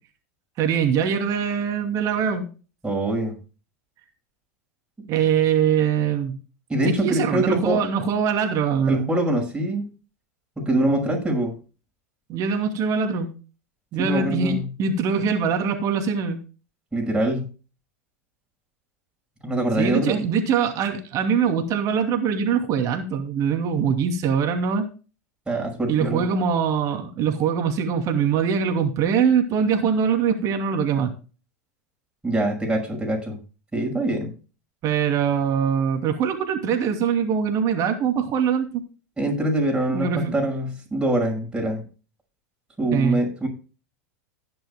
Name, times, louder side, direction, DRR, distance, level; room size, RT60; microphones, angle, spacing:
voice 1, 0.6-2.5 5.1-6.4 6.8-9.1 12.3-13.3 13.9-16.4 19.8-24.9 25.9-31.1 34.8-38.8 39.9-40.3 42.9-43.2, right 7 dB, 45° right, 5 dB, 2.7 m, -23 dB
voice 2, 2.8-3.4 6.7-7.8 8.9-9.9 10.6-11.6 14.0-14.7 16.9-17.5 19.4-20.2 25.5-26.2 32.2-33.4 33.7-34.3 39.2-41.8 42.8-43.5, right 1 dB, 10° right, 0 dB, 6.1 m, -24 dB
16.0 x 10.5 x 2.2 m, 0.34 s
hypercardioid pair, 95°, 8 cm